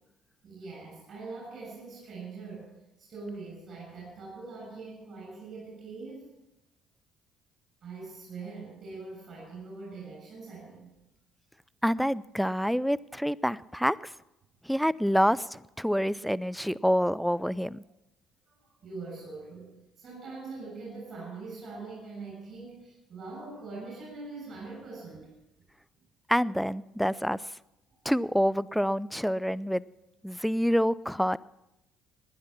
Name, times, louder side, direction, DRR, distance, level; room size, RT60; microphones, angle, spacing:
voice 1, 0.4-2.7 3.0-6.3 7.8-10.9 18.5-25.4, right 3 dB, 50° right, -3 dB, 7.2 m, -43 dB
voice 2, 11.8-14.1 14.6-17.8 26.3-27.6 28.0-29.8 30.2-31.4, equal, ahead, 18 dB, 0.5 m, -27 dB
19.5 x 10.5 x 6.0 m, 0.94 s
hypercardioid pair, 55°, 0 cm